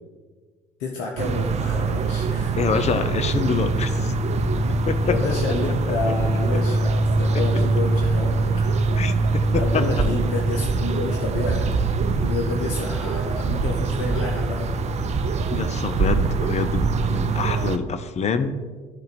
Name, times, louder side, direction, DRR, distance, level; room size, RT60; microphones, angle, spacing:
voice 1, 0.8-2.6 5.0-8.5 9.1-9.2 9.5-11.7 12.2-14.7, left 3 dB, 75° left, 0 dB, 0.9 m, -29 dB
sound 1, 1.2-17.8, right 3 dB, 40° right, 0.6 m, -23 dB
voice 2, 2.6-4.1 4.9-5.1 7.3-7.4 8.9-9.8 15.5-18.5, left 5 dB, 40° left, 10 dB, 0.7 m, -26 dB
11.5 x 3.9 x 4.2 m, 1.5 s
hypercardioid pair, 60°, 17 cm